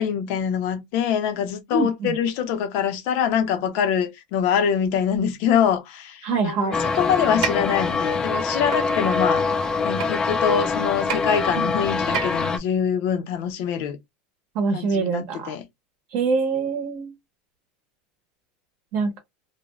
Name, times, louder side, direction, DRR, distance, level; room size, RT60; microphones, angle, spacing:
voice 1, 0.0-6.7 7.0-14.0 14.7-15.6, left 8 dB, 55° left, 0.6 m, -24 dB
voice 2, 1.7-2.1 6.2-6.8 11.5-11.6 14.5-15.6 16.1-17.1 18.9-19.2, right 4 dB, 55° right, 0.8 m, -24 dB
sound 1, 6.7-12.6, left 4 dB, 15° left, 0.4 m, -24 dB
sound 2, 7.4-7.5 8.7-8.8 10.0-10.1 11.1-11.2 12.1-12.5, right 8 dB, 80° right, 0.8 m, -26 dB
2.5 x 2.1 x 3.0 m
supercardioid pair, 145°, 4 cm